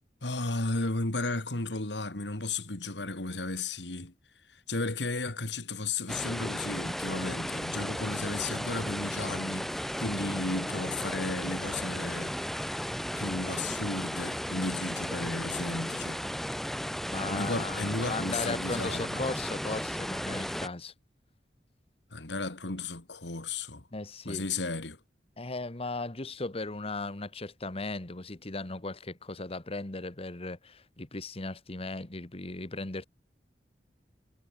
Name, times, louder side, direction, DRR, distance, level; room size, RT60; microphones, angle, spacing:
voice 1, 0.2-4.1 4.7-12.4 13.1-16.2 17.3-19.2 22.1-23.8 24.2-25.0, left 3 dB, 85° left, 2.6 m, -34 dB
sound 1, 6.1-20.7, equal, ahead, 1.4 m, -35 dB
voice 2, 16.8-20.9 23.9-24.4 25.4-33.1, left 2 dB, 35° left, 1.3 m, -37 dB
head